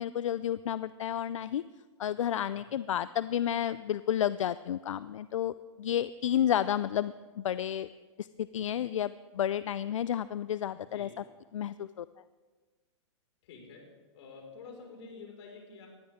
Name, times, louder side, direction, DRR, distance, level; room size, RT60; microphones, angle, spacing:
voice 1, 0.0-1.6 2.0-7.9 8.2-11.1 11.5-12.1, left 10 dB, 85° left, 16 dB, 0.4 m, -31 dB
voice 2, 10.8-11.1 13.4-13.9 14.1-15.9, left 4 dB, 60° left, 0 dB, 5.0 m, -49 dB
19.0 x 13.0 x 3.6 m, 1.4 s
hypercardioid pair, 130°, 16 cm